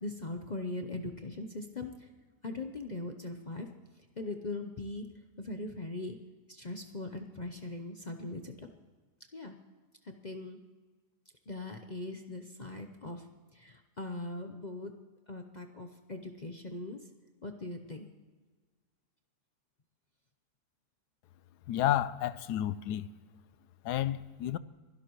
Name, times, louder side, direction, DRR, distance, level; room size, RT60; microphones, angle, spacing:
voice 1, 0.0-2.1 2.4-3.7 4.0-5.1 5.4-6.2 6.5-8.7 9.3-9.5 10.0-10.6 11.5-13.2 13.5-14.9 15.3-17.0 17.4-18.1, left 2 dB, 40° left, 0.7 m, -40 dB
voice 2, 21.7-23.1 23.8-24.6, left 12 dB, 85° left, 1.2 m, -31 dB
27.0 x 11.5 x 3.1 m
omnidirectional pair, 1.7 m